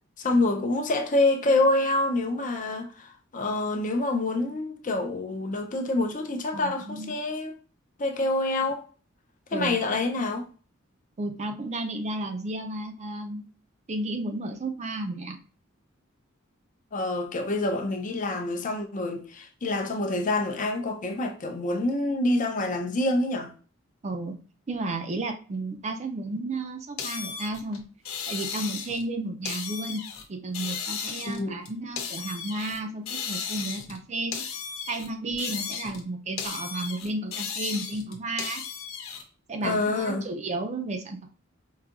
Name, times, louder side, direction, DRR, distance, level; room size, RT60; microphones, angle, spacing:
voice 1, 0.2-7.6 8.0-8.8 9.5-10.5 16.9-23.5 31.3-31.6 39.6-40.3, left 2 dB, 40° left, 0.5 m, -27 dB
voice 2, 6.5-7.1 9.5-9.8 11.2-13.4 13.9-15.4 24.0-24.3 24.7-27.8 28.3-30.0 30.3-34.4 34.9-38.6 39.5-41.3, right 2 dB, 35° right, 0.5 m, -33 dB
sound 1, 27.0-29.1 29.4-30.2 30.5-32.8 33.1-34.0 34.3-36.1 36.4-39.2, left 6 dB, 75° left, 0.7 m, -35 dB
4.7 x 2.7 x 2.4 m
head